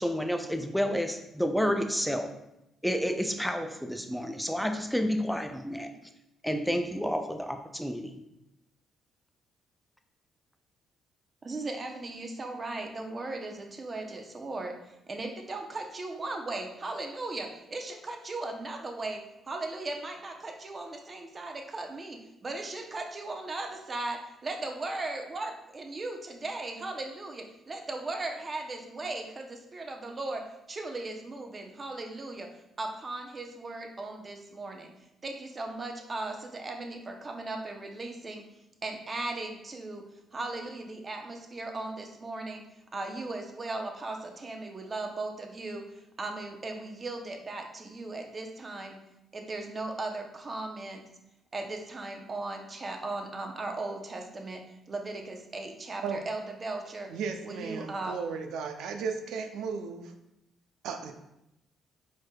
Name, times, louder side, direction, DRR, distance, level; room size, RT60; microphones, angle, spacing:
voice 1, 0.0-2.3 2.8-5.9 6.4-8.2, equal, ahead, 6 dB, 0.3 m, -30 dB
voice 2, 11.4-32.5 32.8-34.9 35.2-38.4 38.8-40.0 40.3-42.6 42.9-45.8 46.2-49.0 49.3-51.0 51.5-54.6 54.9-57.1 57.4-58.2, right 2 dB, 35° right, 3 dB, 0.7 m, -37 dB
voice 3, 57.1-60.1 60.8-61.1, right 5 dB, 85° right, 6 dB, 0.4 m, -35 dB
4.7 x 4.4 x 2.3 m, 0.86 s
cardioid pair, 95°, 0 cm